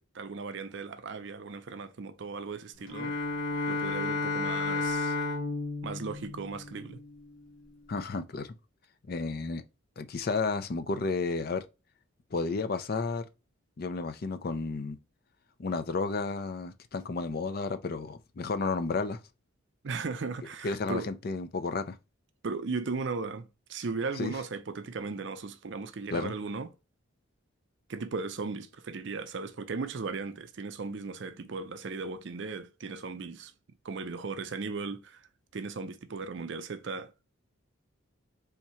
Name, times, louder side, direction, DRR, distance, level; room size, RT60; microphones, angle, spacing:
voice 1, 0.0-3.1 3.7-5.2 5.8-7.0 19.8-21.1 22.4-26.7 27.9-33.5 33.8-35.3 35.5-37.1, right 4 dB, 60° right, 0.5 m, -37 dB
Bowed string instrument, 2.8-7.3, left 3 dB, 75° left, 1.3 m, -32 dB
voice 2, 7.9-8.5 9.1-9.6 10.0-11.6 12.3-13.2 13.8-15.0 15.6-19.2 20.6-22.0 24.2-24.3 26.1-26.3, left 4 dB, 45° left, 0.4 m, -32 dB
3.5 x 2.7 x 4.3 m
head